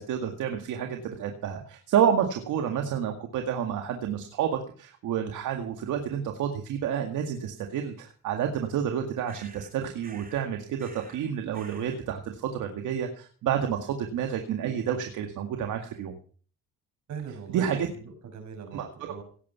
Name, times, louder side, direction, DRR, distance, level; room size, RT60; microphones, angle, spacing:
voice 1, 0.0-16.1 17.5-17.9 18.7-19.1, right 8 dB, 85° right, 5 dB, 2.0 m, -29 dB
sound 1, 9.3-9.7 10.0-10.5 10.8-11.3 11.5-12.0, right 4 dB, 30° right, 3.1 m, -50 dB
voice 2, 17.1-19.2, right 6 dB, 65° right, 5 dB, 6.0 m, -40 dB
17.5 x 8.7 x 5.8 m, 0.43 s
cardioid pair, 90°, 30 cm